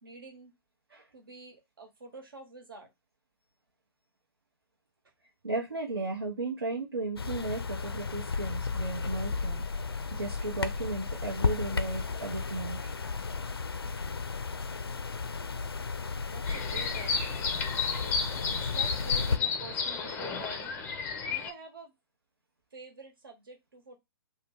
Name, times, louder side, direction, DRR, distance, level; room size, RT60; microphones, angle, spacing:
voice 1, 0.0-0.5 1.1-2.9 16.3-17.4 18.5-20.8 21.3-21.9 22.7-24.0, right 3 dB, 65° right, 1.2 m, -47 dB
voice 2, 5.4-9.6 10.1-12.9, right 2 dB, 85° right, 0.8 m, -35 dB
sound 1, 7.2-19.4, left 4 dB, 85° left, 0.4 m, -34 dB
sound 2, 16.4-21.5, left 5 dB, 15° left, 0.4 m, -32 dB
2.8 x 2.2 x 3.3 m
figure-of-eight pair, 130°, 12 cm